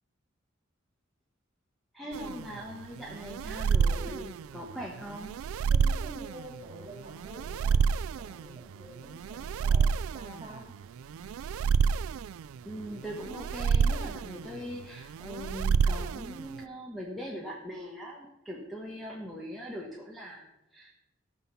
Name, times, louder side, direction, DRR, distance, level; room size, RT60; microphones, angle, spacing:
voice 1, 1.9-5.4 12.6-21.0, equal, ahead, -3 dB, 1.2 m, -41 dB
sound 1, 2.1-16.6, right 6 dB, 90° right, 0.3 m, -29 dB
voice 2, 5.7-10.7, right 1 dB, 25° right, 1 dB, 2.8 m, -47 dB
14.5 x 6.2 x 5.5 m, 0.94 s
head